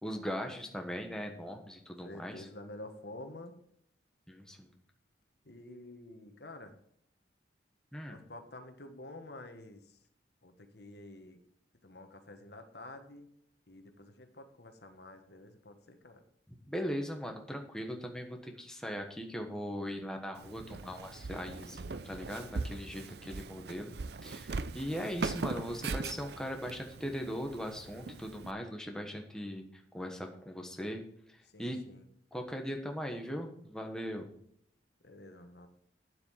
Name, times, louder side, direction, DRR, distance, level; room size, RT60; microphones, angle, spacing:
voice 1, 0.0-2.5 4.3-4.7 7.9-8.2 16.7-23.9 24.2-31.0 31.3-31.8 32.3-34.3, equal, 5° left, 3 dB, 1.3 m, -39 dB
voice 2, 2.0-3.5 5.4-6.7 8.1-9.8 10.4-11.4 11.8-13.3 13.7-16.2 31.5-32.0 35.0-35.7, left 1 dB, 60° left, 7 dB, 1.4 m, -49 dB
Walk footsteps, 20.3-28.5, right 3 dB, 60° right, 0.5 m, -40 dB
9.8 x 7.9 x 5.8 m, 0.68 s
head